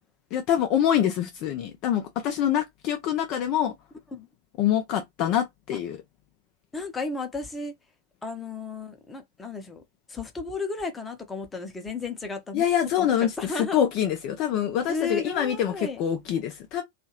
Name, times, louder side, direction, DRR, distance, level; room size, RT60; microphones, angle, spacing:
voice 1, 0.3-3.7 4.6-6.0 12.5-16.8, left 10 dB, 40° left, 0.4 m, -25 dB
voice 2, 6.7-7.7 8.2-9.8 10.1-12.6 13.0-13.1 13.4-13.8 14.9-16.0, left 4 dB, 10° left, 0.8 m, -33 dB
2.7 x 2.4 x 2.9 m
figure-of-eight pair, 90°, 0 cm